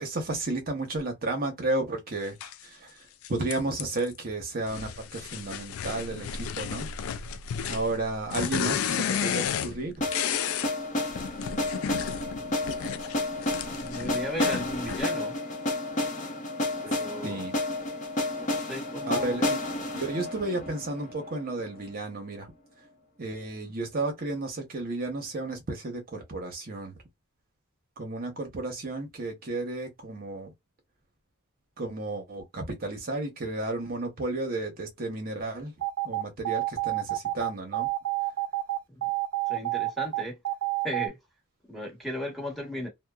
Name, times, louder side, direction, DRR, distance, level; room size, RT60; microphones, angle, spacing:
voice 1, 0.0-7.2 7.7-10.0 13.0-13.1 13.8-13.9 17.2-17.5 19.1-19.6 19.9-22.5 23.2-27.0 28.0-30.5 31.8-35.7 36.0-37.9, right 2 dB, 45° right, 0.8 m, -33 dB
sound 1, 2.4-2.5 3.2-4.1 4.7-10.7 11.1-15.0, left 8 dB, 70° left, 0.3 m, -33 dB
sound 2, 10.0-21.9, left 2 dB, 35° left, 0.9 m, -31 dB
voice 2, 12.3-12.9 13.5-15.4 16.8-17.5 18.3-19.4 38.9-39.0 39.5-40.4 40.8-41.2 41.7-42.9, equal, ahead, 1.1 m, -36 dB
sound 3, 35.8-41.1, right 17 dB, 85° right, 0.4 m, -28 dB
2.8 x 2.1 x 2.3 m
head